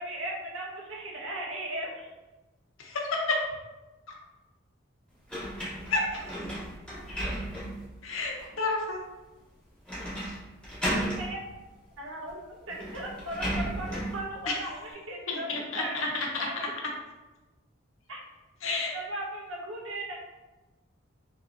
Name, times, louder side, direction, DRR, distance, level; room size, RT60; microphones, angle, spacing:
voice 1, 0.0-2.1 11.1-11.5 12.0-13.9 14.1-14.8 15.1-15.5 15.7-16.7 18.1-18.2 18.9-20.1, right 1 dB, 90° right, -2 dB, 1.1 m, -37 dB
voice 2, 2.8-3.4 5.9-6.2 8.0-9.0 10.3-10.4 14.5-14.6 15.3-15.8 18.6-19.0, left 3 dB, 80° left, -1 dB, 0.7 m, -30 dB
Unlocking door, 5.3-7.9 8.4-8.5 9.9-10.4 10.6-11.3 12.3-12.4 12.7-14.2, right 1 dB, 5° left, 1.0 m, -34 dB
5.7 x 2.8 x 2.6 m, 1.1 s
head